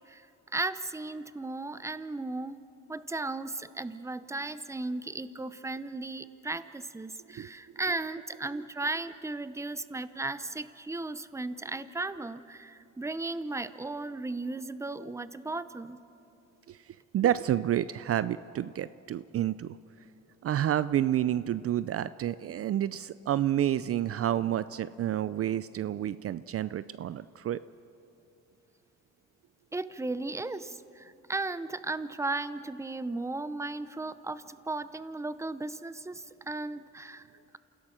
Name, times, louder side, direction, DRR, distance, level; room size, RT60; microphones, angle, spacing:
voice 1, 0.5-2.6 2.9-16.0 29.7-37.3, right 2 dB, 10° right, 14 dB, 0.7 m, -36 dB
voice 2, 16.7-19.8 20.4-27.6, right 11 dB, 50° right, 16 dB, 0.5 m, -29 dB
28.0 x 16.5 x 6.4 m, 2.8 s
cardioid pair, 90°, 30 cm